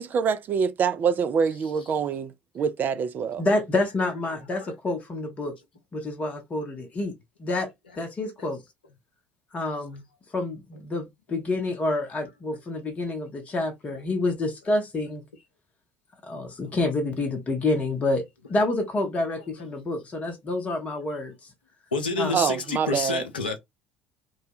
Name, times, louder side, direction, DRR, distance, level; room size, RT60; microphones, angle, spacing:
voice 1, 0.0-3.4 22.3-23.2, right 6 dB, 35° right, 0.3 m, -25 dB
voice 2, 1.5-1.9 4.1-4.7 13.9-14.3 19.6-19.7 21.9-23.6, left 3 dB, 80° left, 0.5 m, -31 dB
voice 3, 3.4-5.6 5.9-7.7 8.0-8.6 9.5-10.0 10.3-15.2 16.2-18.2 18.5-21.3 22.2-22.4, left 2 dB, 25° left, 0.7 m, -28 dB
2.2 x 2.1 x 2.8 m
figure-of-eight pair, 60°, 5 cm